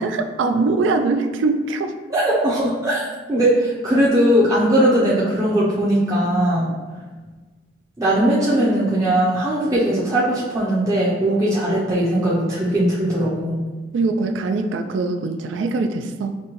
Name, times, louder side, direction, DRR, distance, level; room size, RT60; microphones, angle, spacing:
voice 1, 0.0-1.9 13.9-16.4, right 3 dB, 80° right, 6 dB, 0.3 m, -22 dB
voice 2, 2.1-3.0 3.3-6.7 8.0-13.6, right 1 dB, 20° right, -8 dB, 0.5 m, -19 dB
5.2 x 2.1 x 2.9 m, 1.3 s
head